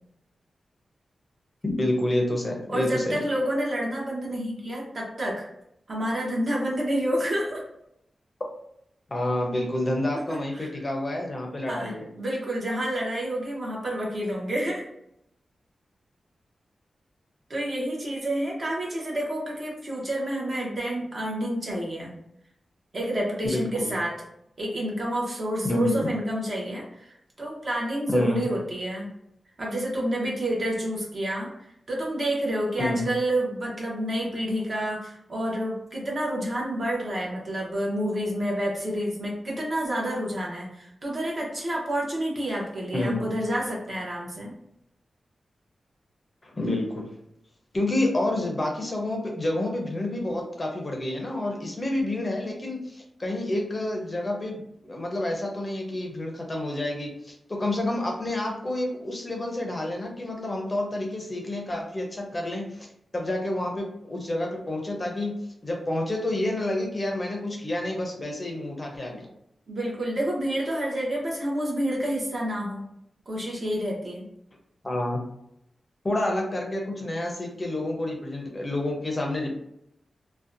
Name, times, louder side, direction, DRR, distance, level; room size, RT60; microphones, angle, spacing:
voice 1, 1.6-3.2 9.1-12.1 23.4-23.9 25.6-26.1 28.1-28.5 32.8-33.1 42.9-43.3 46.4-47.1 47.7-62.9 63.1-65.3 65.6-69.3 74.8-75.2 76.0-79.6, left 1 dB, 30° left, 1 dB, 0.5 m, -29 dB
voice 2, 2.7-5.5 5.9-7.6 10.1-10.7 11.7-14.9 17.5-22.1 22.9-24.2 24.6-29.1 29.6-31.5 31.9-44.5 69.7-72.8 73.3-74.3, right 1 dB, 45° right, -3 dB, 0.7 m, -29 dB
2.5 x 2.1 x 2.5 m, 0.78 s
wide cardioid pair, 115°, 0 cm